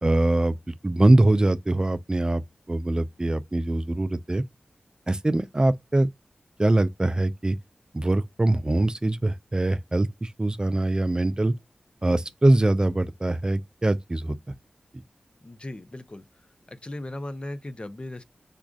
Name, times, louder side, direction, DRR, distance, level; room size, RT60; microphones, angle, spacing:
voice 1, 0.0-2.4 2.7-4.4 5.1-6.1 6.6-7.6 7.9-11.5 12.0-14.4 14.9-15.0, right 2 dB, 25° right, 0.4 m, -23 dB
voice 2, 15.4-16.3 16.7-18.2, left 1 dB, 35° left, 0.5 m, -37 dB
5.0 x 2.4 x 2.4 m
cardioid pair, 45°, 3 cm